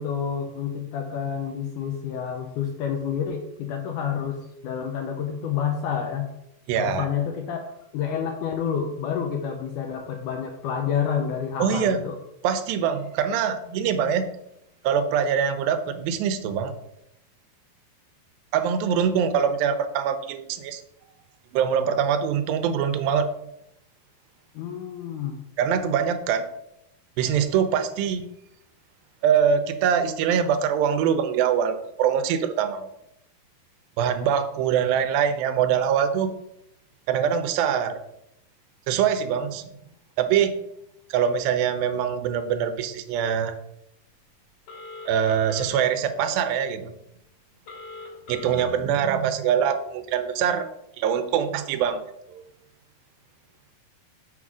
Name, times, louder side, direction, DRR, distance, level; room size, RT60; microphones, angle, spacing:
voice 1, 0.0-4.4 4.6-6.3 6.8-7.6 7.9-12.2 24.6-25.4, left 7 dB, 75° left, 4 dB, 1.9 m, -29 dB
voice 2, 6.7-7.1 11.6-12.0 12.4-14.3 14.8-16.8 18.5-20.8 21.5-23.3 25.6-26.5 27.2-28.3 29.2-32.9 34.0-36.3 37.1-38.0 38.9-39.7 40.2-40.6 41.1-43.5 45.1-46.9 48.3-50.7 51.0-52.0 52.3-52.4, right 8 dB, 85° right, 9 dB, 2.4 m, -23 dB
Telephone, 44.7-45.7 47.7-48.7, left 3 dB, 60° left, 3.2 m, -40 dB
6.4 x 3.7 x 6.0 m, 0.81 s
omnidirectional pair, 4.1 m